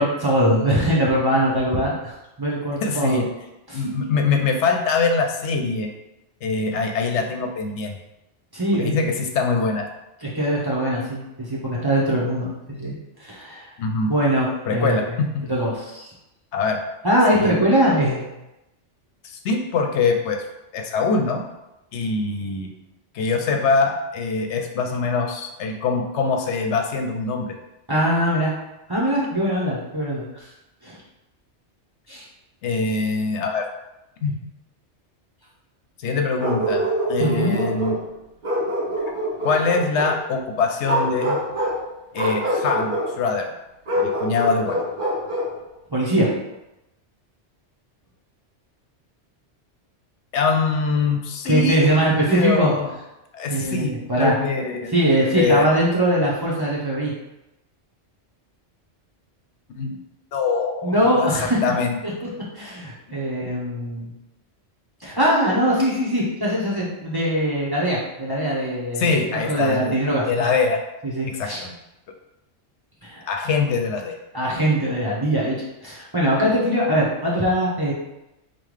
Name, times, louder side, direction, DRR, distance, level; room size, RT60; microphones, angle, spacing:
voice 1, 0.0-3.2 3.7-3.8 8.5-8.9 10.2-13.7 14.0-15.2 15.5-16.1 17.0-18.2 27.9-28.5 28.9-30.5 30.8-31.0 32.1-32.2 37.2-37.6 45.9-46.3 51.4-52.7 53.5-54.3 54.9-57.1 60.8-61.6 62.0-62.1 62.5-64.1 65.0-69.1 69.5-70.5 71.0-71.6 73.0-73.3 74.3-75.5 75.8-77.9, right 1 dB, 25° right, -6 dB, 0.7 m, -22 dB
voice 2, 2.8-3.2 3.7-5.9 6.4-8.0 8.8-9.9 13.8-14.1 14.7-15.5 16.5-16.8 17.3-17.6 19.2-20.4 20.7-21.4 21.9-22.7 23.1-27.5 32.6-33.7 34.2-34.3 36.0-38.0 39.4-41.4 42.1-43.5 43.9-44.8 50.3-51.9 52.3-52.9 53.3-53.9 54.2-54.9 55.4-55.7 59.8-60.0 60.3-62.0 69.0-70.0 70.3-70.8 71.3-71.7 73.3-74.2, left 4 dB, 75° left, 3 dB, 0.8 m, -23 dB
Bark, 36.4-38.0 38.4-40.2 40.8-41.8 42.1-43.1 43.9-45.5, right 1 dB, 45° right, 1.2 m, -25 dB
5.5 x 2.3 x 3.2 m, 0.93 s
omnidirectional pair, 1.2 m